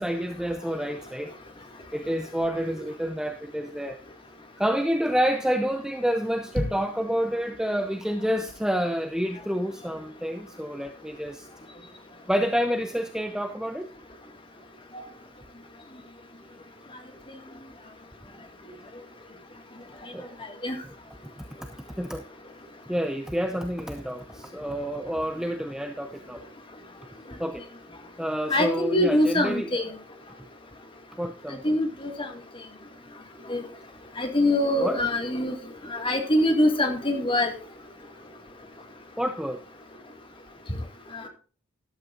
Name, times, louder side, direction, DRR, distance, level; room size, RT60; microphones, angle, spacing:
voice 1, 0.0-1.4 1.9-4.0 4.6-11.5 12.3-13.9 20.1-20.8 22.0-22.2 22.9-26.4 27.4-27.6 28.2-29.7 31.2-31.8 34.8-35.0 39.2-39.6, equal, 5° right, 6 dB, 0.6 m, -28 dB
voice 2, 28.5-29.9 31.6-32.3 33.5-33.6 34.2-35.5 35.9-37.5 41.1-41.3, left 1 dB, 25° left, 4 dB, 2.1 m, -24 dB
13.5 x 12.0 x 2.6 m, 0.39 s
head